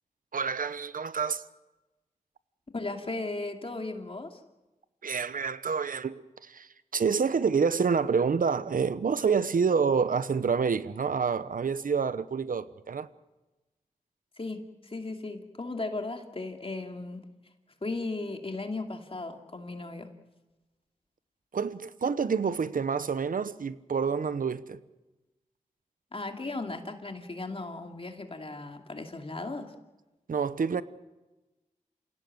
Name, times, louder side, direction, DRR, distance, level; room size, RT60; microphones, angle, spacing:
voice 1, 0.3-1.4 5.0-13.1 21.5-24.8 30.3-30.8, right 6 dB, 75° right, 1.0 m, -28 dB
voice 2, 2.7-4.4 14.4-17.3 17.8-20.1 26.1-29.7, left 2 dB, 40° left, 2.5 m, -36 dB
28.0 x 16.5 x 7.9 m
cardioid pair, 55°, 14 cm